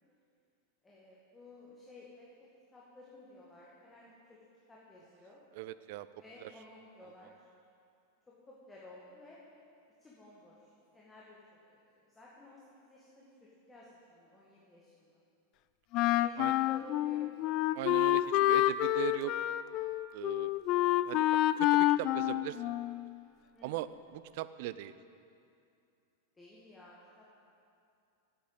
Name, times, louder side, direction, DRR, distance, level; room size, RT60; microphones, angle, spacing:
voice 1, 0.8-4.4 4.7-5.4 6.2-7.5 8.5-9.4 10.0-11.4 11.9-15.2 16.2-17.3 23.5-23.7 26.3-27.3, left 1 dB, 10° left, -6 dB, 1.9 m, -55 dB
voice 2, 5.5-6.1 6.4-6.5 16.4-16.5 17.8-19.3 20.1-20.5 21.0-21.3 21.6-22.7 23.6-24.9, right 15 dB, 50° right, 15 dB, 0.4 m, -39 dB
Wind instrument woodwind instrument, 15.9-23.1, left 15 dB, 40° left, 0.3 m, -28 dB
8.9 x 8.5 x 7.8 m, 2.5 s
figure-of-eight pair, 90°, 0 cm